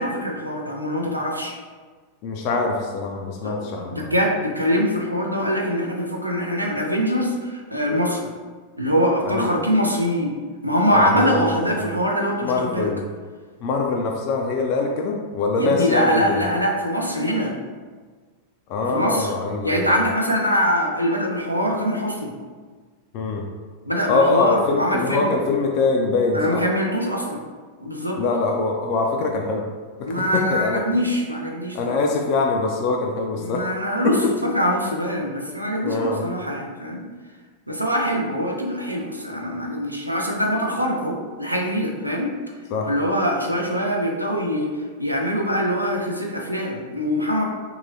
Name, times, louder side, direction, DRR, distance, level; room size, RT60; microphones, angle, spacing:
voice 1, 0.0-1.5 3.4-3.6 3.9-8.2 8.8-10.3 10.6-12.9 15.6-17.5 18.9-19.3 19.6-22.3 23.9-25.3 26.3-27.4 27.8-28.2 30.1-32.0 33.4-34.2 34.4-37.0 37.7-42.3 42.9-44.7 45.0-47.4, equal, 90° right, 0 dB, 0.4 m, -23 dB
voice 2, 2.2-4.1 9.2-9.5 10.9-11.8 12.4-13.0 13.6-16.5 18.7-20.1 23.1-23.5 24.1-26.6 28.2-29.6 30.0-30.8 31.7-33.6 34.0-34.3 35.8-36.2 42.7-42.9, left 3 dB, 45° left, 1 dB, 0.3 m, -23 dB
2.9 x 2.8 x 2.5 m, 1.5 s
figure-of-eight pair, 90°, 0 cm